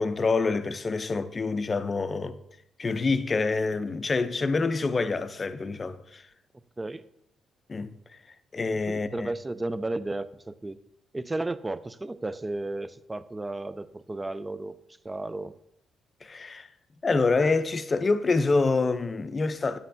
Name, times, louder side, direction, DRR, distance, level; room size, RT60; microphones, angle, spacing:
voice 1, 0.0-2.4 2.8-6.2 7.7-8.0 8.5-9.3 16.2-16.7 17.0-19.8, left 3 dB, 35° left, 0.5 m, -26 dB
voice 2, 8.9-10.8 11.1-14.8 15.0-15.5, right 2 dB, 20° right, 0.4 m, -33 dB
9.1 x 7.5 x 2.6 m
cardioid pair, 90°, 0 cm